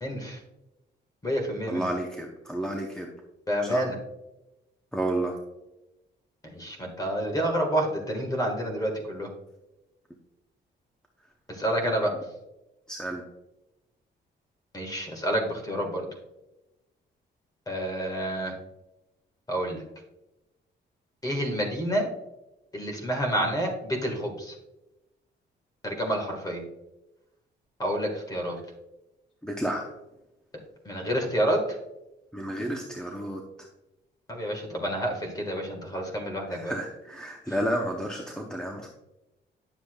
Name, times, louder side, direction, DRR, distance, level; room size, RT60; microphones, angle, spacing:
voice 1, 0.0-0.4 1.2-1.9 3.5-4.0 6.4-9.3 11.5-12.1 14.7-16.1 17.7-18.5 19.5-19.8 21.2-22.1 22.7-24.5 25.8-26.6 27.8-28.6 30.8-31.8 34.3-36.7 37.5-37.6, equal, 20° left, 2 dB, 1.5 m, -29 dB
voice 2, 1.7-3.1 3.6-3.9 4.9-5.4 12.9-13.2 29.4-29.9 32.3-33.4 36.5-38.9, right 1 dB, 5° left, 0 dB, 0.7 m, -31 dB
9.9 x 6.9 x 2.3 m, 0.96 s
cardioid pair, 150°, 19 cm